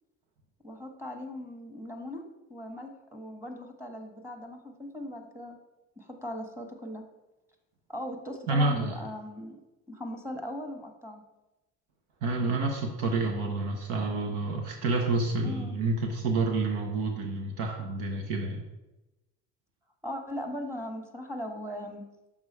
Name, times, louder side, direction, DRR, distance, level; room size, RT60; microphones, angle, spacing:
voice 1, 0.6-2.2 2.5-5.6 6.0-7.0 7.9-9.6 9.9-11.2 15.4-15.8 20.0-22.0, left 1 dB, 5° right, 4 dB, 1.2 m, -39 dB
voice 2, 8.5-9.0 12.2-18.6, right 3 dB, 75° right, 3 dB, 0.9 m, -29 dB
6.2 x 3.6 x 5.3 m, 1.0 s
hypercardioid pair, 55°, 40 cm